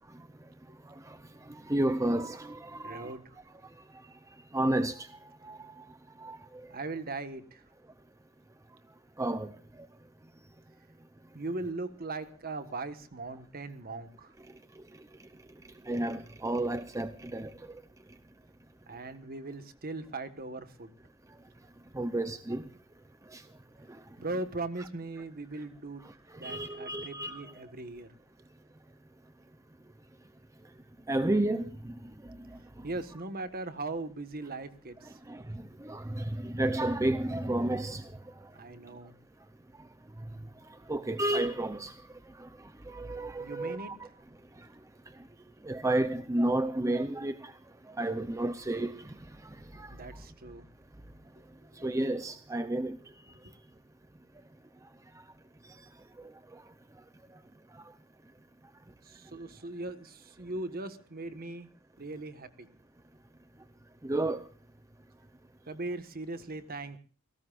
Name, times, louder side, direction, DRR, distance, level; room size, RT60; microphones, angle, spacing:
voice 1, 1.7-3.1 4.5-5.1 5.4-5.7 6.2-6.4 9.2-9.5 15.9-17.5 21.9-22.6 23.3-23.4 26.4-27.5 31.1-31.9 35.3-38.1 40.9-41.9 42.4-42.5 42.9-44.1 45.6-47.5 48.0-49.0 49.7-49.9 51.8-53.0 64.0-64.4, right 1 dB, 15° right, 0.7 m, -31 dB
voice 2, 2.8-3.4 6.7-7.6 11.3-14.3 18.9-20.9 24.2-26.1 26.4-28.1 32.8-35.2 38.5-39.1 43.4-43.9 49.9-50.6 51.8-51.9 53.4-53.5 59.0-61.7 62.0-62.7 65.7-67.0, right 2 dB, 40° right, 1.5 m, -39 dB
29.5 x 18.0 x 2.5 m
head